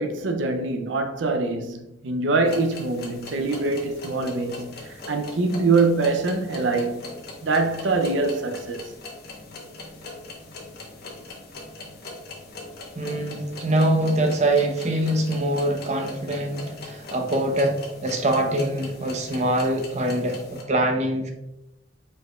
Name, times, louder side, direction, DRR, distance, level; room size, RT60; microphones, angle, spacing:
voice 1, 0.0-7.1 7.4-8.9, right 3 dB, 75° right, 0.5 m, -24 dB
sound 1, 2.5-20.6, left 2 dB, 55° left, 1.0 m, -40 dB
voice 2, 13.0-21.3, right 1 dB, 40° right, 0.8 m, -24 dB
4.7 x 4.5 x 2.3 m
head